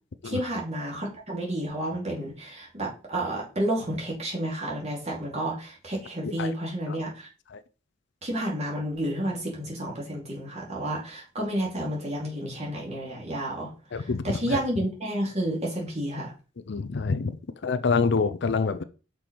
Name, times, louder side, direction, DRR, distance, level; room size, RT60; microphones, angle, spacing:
voice 1, 0.2-7.3 8.2-16.3, right 1 dB, 35° right, -3 dB, 2.5 m, -31 dB
voice 2, 13.9-14.2 14.5-14.6 16.7-17.4 17.6-18.8, left 4 dB, 60° left, 13 dB, 0.5 m, -26 dB
6.0 x 4.6 x 5.1 m, 0.34 s
head